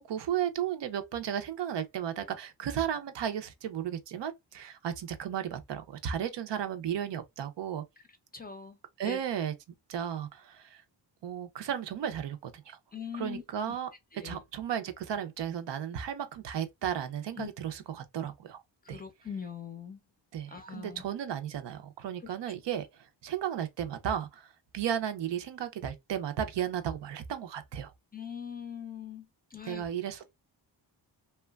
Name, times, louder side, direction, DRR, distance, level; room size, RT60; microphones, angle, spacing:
voice 1, 0.0-7.8 9.0-9.5 9.9-10.8 11.2-12.8 13.1-13.9 14.2-18.6 18.9-19.0 20.3-22.9 23.2-27.9 29.7-30.3, right 9 dB, 70° right, 0.6 m, -34 dB
voice 2, 8.3-8.8 9.0-9.2 12.9-13.7 14.1-14.4 17.4-17.5 18.8-20.0 20.5-21.0 28.1-29.9, left 7 dB, 20° left, 0.6 m, -41 dB
2.9 x 2.2 x 2.2 m
wide cardioid pair, 95°, 44 cm